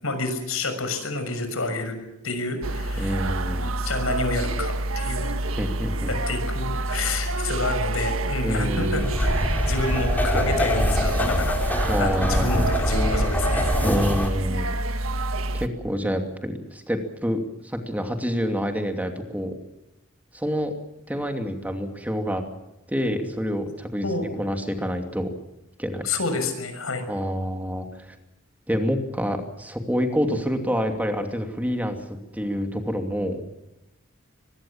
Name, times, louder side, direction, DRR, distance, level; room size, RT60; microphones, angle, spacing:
voice 1, 0.0-2.0 2.2-3.2 3.8-5.3 6.1-9.4 9.7-11.6 12.0-13.8 24.0-24.3 26.0-27.1, left 3 dB, 85° left, 8 dB, 6.5 m, -29 dB
sound 1, 2.6-15.7, right 2 dB, 80° right, 1.6 m, -27 dB
voice 2, 3.0-3.7 5.6-6.1 8.4-9.1 9.6-9.7 11.9-12.7 13.8-14.7 15.5-19.5 20.3-20.7 21.1-22.4 22.9-24.1 24.4-25.3 25.8-26.1 27.1-28.1 28.7-32.0 32.3-33.4, equal, 10° right, 5 dB, 2.7 m, -27 dB
sound 2, 9.0-14.3, equal, 10° left, 4.1 m, -24 dB
24.0 x 22.5 x 7.3 m, 0.92 s
head